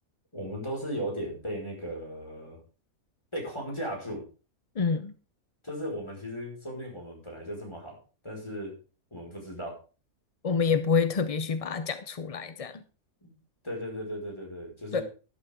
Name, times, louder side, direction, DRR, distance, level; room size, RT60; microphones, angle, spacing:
voice 1, 0.3-2.6 3.3-4.2 5.6-8.0 8.2-8.7 9.1-9.8 13.2-13.3 13.6-15.0, equal, 20° left, 5.1 m, -36 dB
voice 2, 4.8-5.1 10.4-12.8 14.9-15.0, left 5 dB, 45° left, 0.4 m, -27 dB
12.0 x 11.5 x 3.7 m
omnidirectional pair, 1.5 m